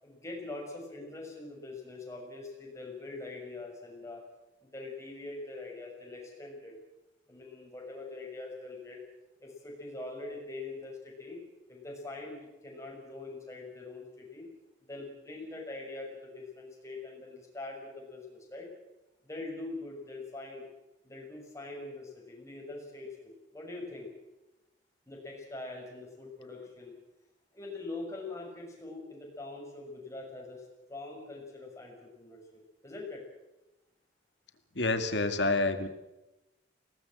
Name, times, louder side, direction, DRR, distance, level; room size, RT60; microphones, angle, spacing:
voice 1, 0.0-4.2 4.6-6.7 7.3-9.0 9.4-11.4 11.7-14.5 14.9-18.7 19.2-20.6 21.0-24.1 25.1-26.9 27.5-33.2, left 2 dB, 15° left, -1 dB, 6.5 m, -43 dB
voice 2, 34.8-35.9, left 2 dB, 65° left, 8 dB, 2.0 m, -28 dB
22.5 x 18.5 x 7.7 m, 0.98 s
head